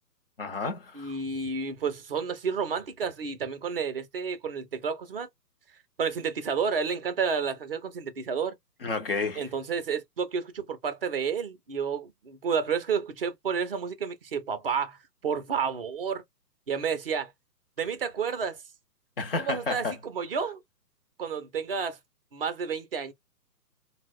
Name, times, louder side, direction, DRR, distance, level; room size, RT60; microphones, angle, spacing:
voice 1, 0.4-1.1 8.8-9.4 19.2-19.9, left 3 dB, 40° left, 0.5 m, -31 dB
voice 2, 0.9-5.3 6.0-8.6 9.4-16.2 16.7-17.3 17.8-18.6 19.4-20.6 21.2-22.0 22.3-23.1, right 6 dB, 40° right, 0.5 m, -30 dB
3.8 x 2.1 x 2.2 m
hypercardioid pair, 145°, 49 cm